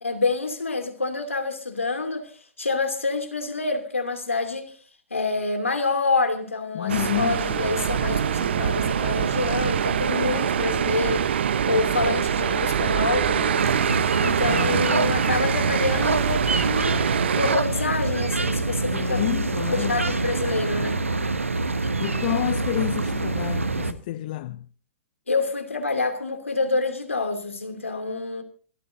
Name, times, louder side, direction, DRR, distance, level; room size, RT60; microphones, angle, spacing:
voice 1, 0.0-2.3 2.6-4.7 5.1-11.4 11.7-13.6 14.2-17.1 17.4-19.2 19.7-21.0 25.3-28.4, left 3 dB, 80° left, 2.9 m, -27 dB
voice 2, 6.7-7.6 14.4-15.2 18.9-20.1 21.7-24.7, left 14 dB, 45° left, 0.7 m, -30 dB
sound 1, 6.9-17.6, right 8 dB, 60° right, 1.0 m, -24 dB
sound 2, 13.6-23.9, right 3 dB, 80° right, 1.3 m, -26 dB
27.5 x 13.5 x 2.7 m
figure-of-eight pair, 115°, 7 cm